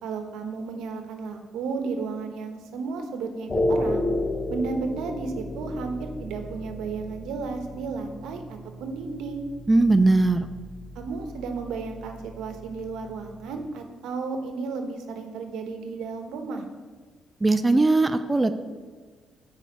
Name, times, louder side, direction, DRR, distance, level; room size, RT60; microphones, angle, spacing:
voice 1, 0.0-4.1 4.5-9.5 10.9-16.7, right 4 dB, 85° right, 5 dB, 0.9 m, -33 dB
sound 1, 3.5-13.7, left 1 dB, 30° left, 0.7 m, -33 dB
voice 2, 9.7-10.5 17.4-18.5, right 2 dB, 20° right, 9 dB, 0.4 m, -19 dB
9.1 x 4.6 x 5.3 m, 1.4 s
cardioid pair, 90°, 0 cm